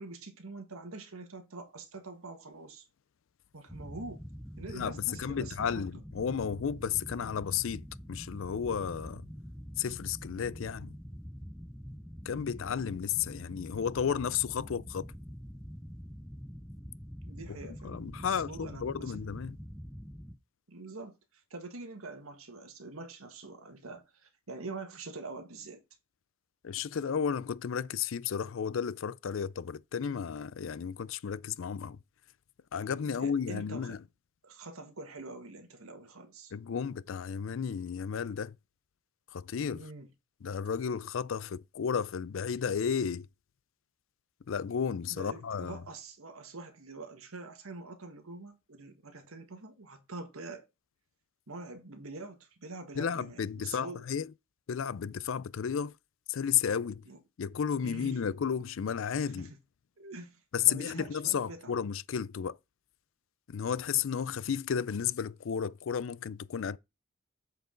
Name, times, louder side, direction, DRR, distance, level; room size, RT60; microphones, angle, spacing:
voice 1, 0.0-2.8 3.5-4.2 4.6-5.8 17.3-19.2 20.7-21.2 21.5-25.8 33.0-34.0 34.4-36.5 39.8-40.1 45.1-50.7 51.5-54.0 57.1-57.2 57.8-58.4 59.2-59.5 60.0-61.8, right 3 dB, 85° right, 1.6 m, -45 dB
sound 1, 3.7-20.4, equal, ahead, 0.4 m, -45 dB
voice 2, 4.7-9.3 9.8-10.9 12.3-15.1 17.8-19.6 26.6-32.0 32.7-34.0 36.5-38.6 39.3-39.9 40.4-43.3 44.5-45.8 53.0-54.3 54.7-55.9 56.3-57.0 57.4-59.5 60.5-62.6 63.5-66.8, left 7 dB, 65° left, 0.4 m, -33 dB
7.9 x 4.7 x 3.8 m
head